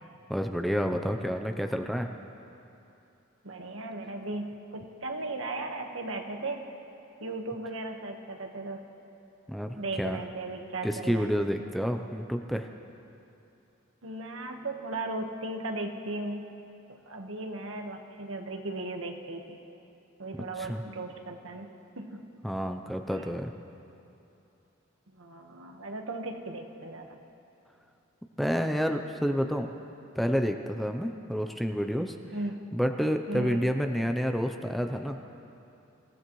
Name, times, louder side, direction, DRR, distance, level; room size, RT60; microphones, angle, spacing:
voice 1, 0.3-2.1 9.5-10.2 10.8-12.7 20.6-20.8 22.4-23.5 28.4-29.7 30.2-32.2 32.7-35.2, equal, ahead, 5 dB, 0.5 m, -29 dB
voice 2, 3.4-6.7 7.2-8.8 9.8-11.3 14.0-16.5 17.1-19.6 20.2-21.7 22.0-22.3 23.1-23.3 25.1-27.2 32.3-32.6 33.3-33.6, right 2 dB, 80° right, 3 dB, 1.3 m, -36 dB
27.0 x 16.0 x 3.1 m, 2.8 s
head